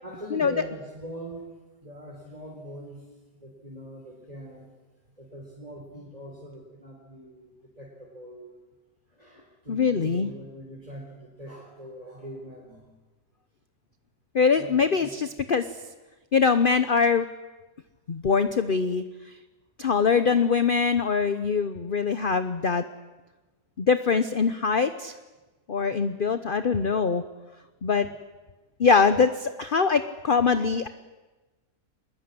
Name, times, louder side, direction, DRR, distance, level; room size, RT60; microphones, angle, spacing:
voice 1, 0.0-4.7 5.2-8.6 9.1-12.8 14.6-15.1, equal, 25° right, -2 dB, 4.2 m, -42 dB
voice 2, 9.7-10.3 14.3-15.6 16.3-17.2 18.1-19.0 19.8-22.8 23.8-25.1 25.7-27.2 27.8-28.1 28.8-30.9, left 5 dB, 40° left, 11 dB, 0.9 m, -23 dB
24.5 x 20.5 x 9.7 m, 1.2 s
omnidirectional pair, 1.7 m